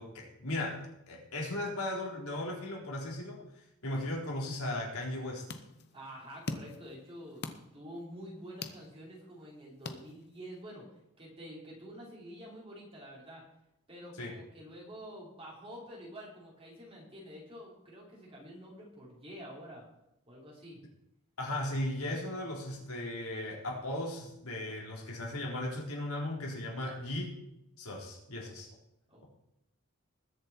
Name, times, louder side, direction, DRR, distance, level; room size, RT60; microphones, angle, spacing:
voice 1, 0.0-3.4 3.8-5.4 14.2-14.3 21.4-27.3 27.8-28.7, left 1 dB, 85° left, -1 dB, 4.1 m, -37 dB
Great Punch, 5.0-10.6, left 3 dB, 50° left, 1.0 m, -46 dB
voice 2, 5.9-10.9 11.2-13.4 13.9-19.8 20.3-20.8 29.1-29.2, equal, 25° right, -3 dB, 4.6 m, -48 dB
20.5 x 7.6 x 4.5 m, 0.83 s
head